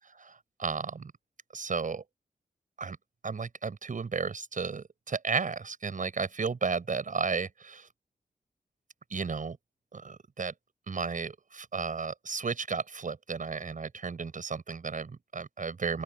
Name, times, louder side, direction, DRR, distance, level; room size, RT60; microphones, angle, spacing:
voice 1, 0.0-1.1 1.5-2.0 2.8-3.0 3.2-7.9 9.1-9.6 9.9-10.5 10.9-16.0, right 5 dB, 60° right, 6.6 m, -33 dB
open air
wide cardioid pair, 80°, 15 cm